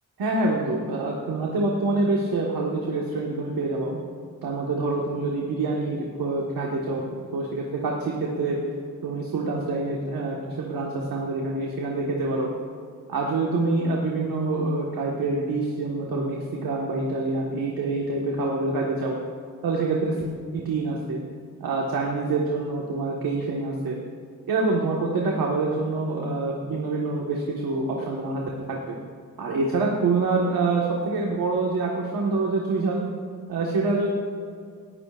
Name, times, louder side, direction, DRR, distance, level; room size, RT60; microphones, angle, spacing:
voice 1, 0.2-4.0 4.4-8.6 9.0-12.5 13.1-19.2 19.6-20.2 20.5-21.2 21.6-24.0 24.5-28.4 28.7-28.9 29.4-33.0 33.5-34.1, right 3 dB, 75° right, -2 dB, 1.7 m, -26 dB
19.0 x 15.5 x 2.5 m, 2.2 s
wide cardioid pair, 130°, 35 cm